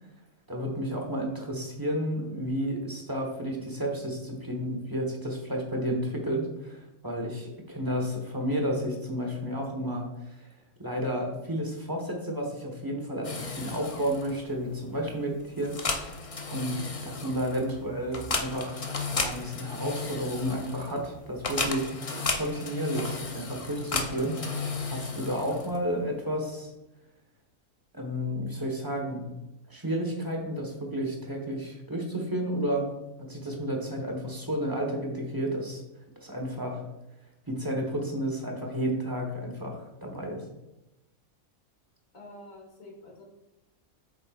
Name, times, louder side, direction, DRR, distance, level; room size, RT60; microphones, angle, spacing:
voice 1, 0.5-10.5 10.8-16.2 16.5-18.8 19.1-21.9 22.3-26.7 27.9-29.3 29.7-32.9 33.2-35.8 36.2-36.8 37.5-40.4, equal, 15° right, 1 dB, 1.3 m, -32 dB
sound 1, 13.2-26.0, left 3 dB, 40° left, 0.5 m, -35 dB
voice 2, 42.1-43.2, left 1 dB, 70° left, 0 dB, 2.2 m, -48 dB
8.6 x 6.6 x 2.5 m, 0.98 s
omnidirectional pair, 1.5 m